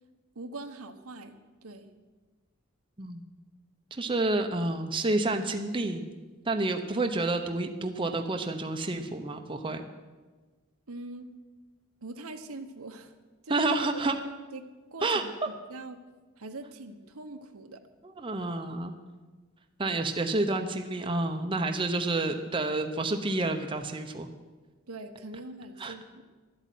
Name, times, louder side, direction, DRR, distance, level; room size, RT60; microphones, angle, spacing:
voice 1, 0.3-1.9 10.9-11.3 12.0-13.1 13.4-13.7 13.9-14.0 14.5-16.0 16.4-17.8 19.9-20.0 24.9-26.2, right 2 dB, 85° right, 7 dB, 1.1 m, -43 dB
voice 2, 3.9-6.0 6.4-9.8 13.5-14.2 15.0-15.2 18.0-19.0 19.8-24.3 25.8-25.9, right 2 dB, 25° right, 5 dB, 0.8 m, -29 dB
12.5 x 8.3 x 9.2 m, 1.3 s
head